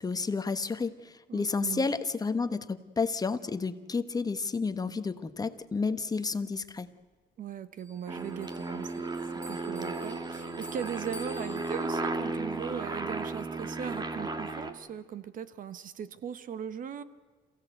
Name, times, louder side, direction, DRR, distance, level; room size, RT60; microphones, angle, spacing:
voice 1, 0.0-6.9, left 4 dB, 20° left, 11 dB, 1.2 m, -31 dB
voice 2, 1.3-1.9 7.4-8.9 9.4-17.0, right 8 dB, 55° right, 14 dB, 1.3 m, -39 dB
Bell, 7.8-12.3, equal, 5° left, 7.8 m, -51 dB
Aircraft, 8.1-14.7, right 3 dB, 25° right, 2.0 m, -35 dB
28.0 x 16.0 x 8.0 m, 1.4 s
cardioid pair, 110°, 17 cm